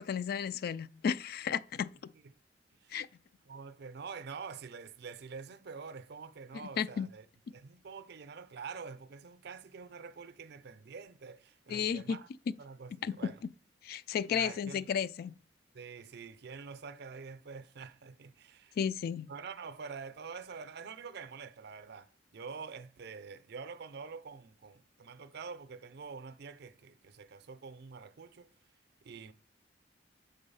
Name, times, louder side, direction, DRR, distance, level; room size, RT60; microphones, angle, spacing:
voice 1, 0.0-2.1 2.9-3.1 6.8-7.1 11.7-12.2 13.0-13.1 13.8-15.3 18.8-19.3, left 7 dB, 55° left, 0.3 m, -33 dB
voice 2, 3.4-7.3 7.5-12.3 12.6-13.4 14.3-14.9 15.7-18.8 19.3-28.5 29.0-29.3, right 5 dB, 65° right, 0.5 m, -46 dB
6.2 x 3.9 x 5.5 m
head